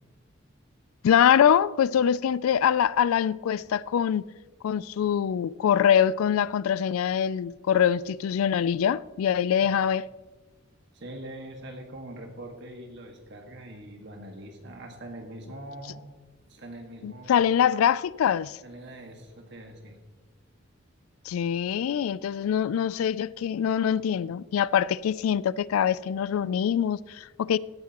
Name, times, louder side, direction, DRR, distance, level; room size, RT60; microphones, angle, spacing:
voice 1, 1.0-4.2 4.6-10.1 17.0-18.6 21.3-27.6, left 8 dB, 80° left, 0.3 m, -24 dB
voice 2, 10.9-16.1 16.5-17.5 18.6-20.0, right 1 dB, 55° right, 1.7 m, -43 dB
16.5 x 9.7 x 3.0 m
head